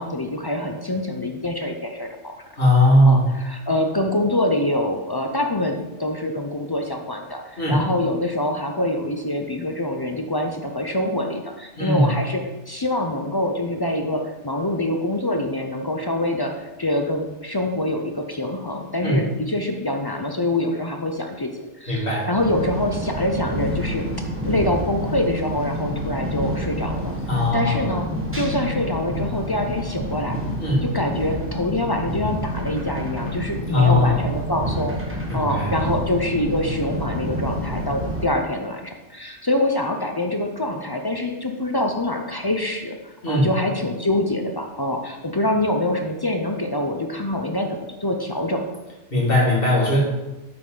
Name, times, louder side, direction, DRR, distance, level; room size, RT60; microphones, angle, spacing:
voice 1, 0.0-2.3 3.0-3.2 3.4-12.4 12.7-21.5 21.8-24.0 24.5-27.1 27.5-28.1 28.3-30.4 30.8-48.7, left 1 dB, 30° left, 3 dB, 0.4 m, -25 dB
voice 2, 2.6-3.4 7.6-7.9 11.8-12.2 19.0-19.3 21.9-22.3 27.3-27.9 30.6-30.9 33.7-34.3 35.3-35.7 43.2-43.5 49.1-50.0, left 1 dB, 50° left, -5 dB, 2.3 m, -19 dB
sound 1, 22.4-38.3, equal, 10° right, 1.1 m, -28 dB
7.6 x 5.9 x 3.8 m, 1.0 s
omnidirectional pair, 1.2 m